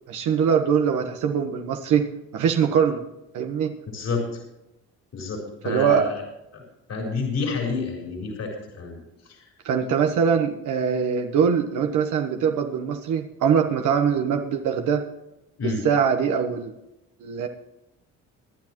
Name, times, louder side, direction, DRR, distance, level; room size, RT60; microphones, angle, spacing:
voice 1, 0.1-2.1 2.3-3.0 3.3-3.7 5.6-6.1 9.6-15.0 15.6-16.7 17.2-17.5, right 7 dB, 80° right, 3 dB, 1.2 m, -22 dB
voice 2, 3.9-4.4 5.1-6.2 6.5-6.6 6.9-9.5 15.6-15.9, left 4 dB, 55° left, 0 dB, 4.0 m, -29 dB
24.0 x 9.8 x 3.0 m, 0.91 s
cardioid pair, 90°, 30 cm